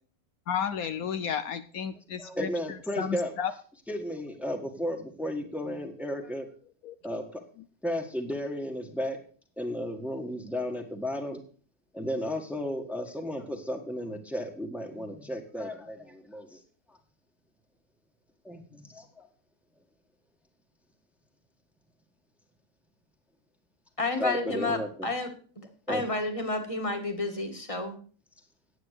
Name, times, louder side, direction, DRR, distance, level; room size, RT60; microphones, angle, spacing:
voice 1, 0.5-2.5 3.0-3.5 6.8-6.9, left 8 dB, 70° left, 10 dB, 1.2 m, -32 dB
voice 2, 2.2-3.3 3.9-6.5 7.0-7.4 7.8-9.2 9.6-11.4 11.9-16.6 16.9-17.0 18.4-19.3 24.2-24.9 25.9-26.0, equal, ahead, 4 dB, 1.5 m, -34 dB
voice 3, 24.0-25.3 25.5-28.0, left 2 dB, 20° left, 5 dB, 1.8 m, -31 dB
9.8 x 8.4 x 6.6 m, 0.42 s
omnidirectional pair, 1.6 m